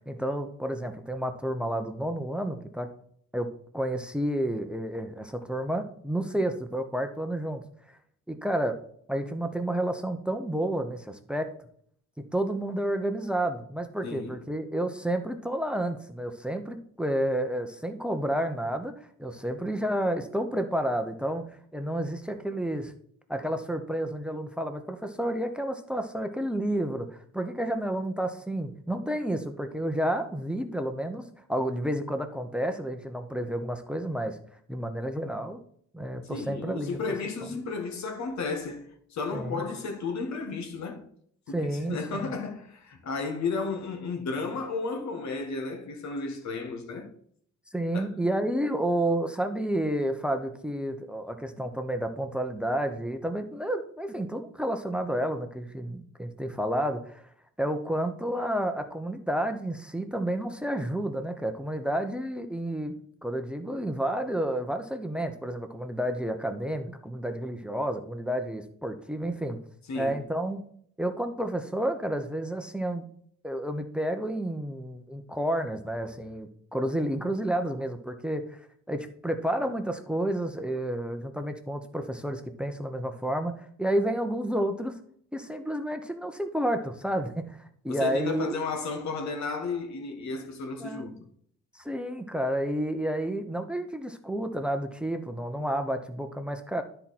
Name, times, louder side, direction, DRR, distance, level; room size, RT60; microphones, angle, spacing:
voice 1, 0.0-2.9 3.3-7.6 8.3-8.8 9.1-11.5 12.3-22.9 23.3-31.2 31.5-34.4 34.7-35.6 35.9-37.0 39.3-39.6 41.5-42.3 47.7-57.2 57.6-62.9 63.2-69.6 70.0-70.6 71.0-73.1 73.4-78.6 78.9-84.9 85.3-88.6 90.8-91.2 91.7-96.8, right 1 dB, 5° right, 0.9 m, -30 dB
voice 2, 14.0-14.4 36.3-41.1 41.5-47.1 47.9-48.1 69.9-70.2 87.9-91.1, left 4 dB, 65° left, 1.7 m, -33 dB
12.5 x 4.4 x 4.3 m
cardioid pair, 90°, 30 cm